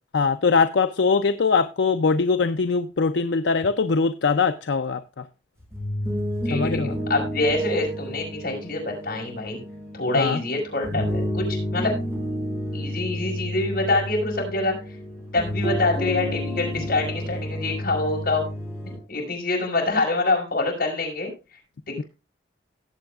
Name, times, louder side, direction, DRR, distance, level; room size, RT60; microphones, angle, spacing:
voice 1, 0.1-5.2 6.5-6.9 10.1-10.4 22.0-22.1, left 4 dB, 75° left, 0.5 m, -22 dB
sound 1, 5.6-19.0, equal, 15° right, 4.1 m, -30 dB
voice 2, 6.5-9.6 9.9-11.9 12.7-14.8 15.3-18.5 18.8-21.3, left 2 dB, 55° left, 5.4 m, -25 dB
18.0 x 7.9 x 2.4 m
head